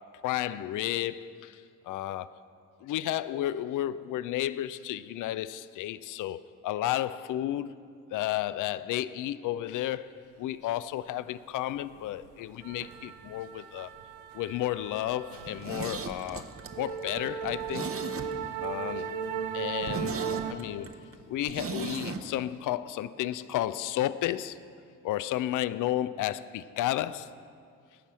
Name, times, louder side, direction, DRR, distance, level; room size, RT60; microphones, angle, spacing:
voice 1, 0.0-2.3 2.8-7.7 8.1-13.9 14.3-16.5 16.8-17.9 18.6-19.1 19.5-20.2 20.5-20.9 21.3-24.6 25.0-27.3, left 13 dB, 55° left, 0.4 m, -32 dB
sound 1, 11.7-12.0 12.2-20.5, right 7 dB, 75° right, 0.6 m, -37 dB
Zipper (clothing), 15.4-18.7 19.0-19.1 19.4-19.5 19.8-22.2 22.5-22.6, right 4 dB, 35° right, 0.9 m, -37 dB
11.5 x 5.4 x 7.4 m
hypercardioid pair, 45°, 38 cm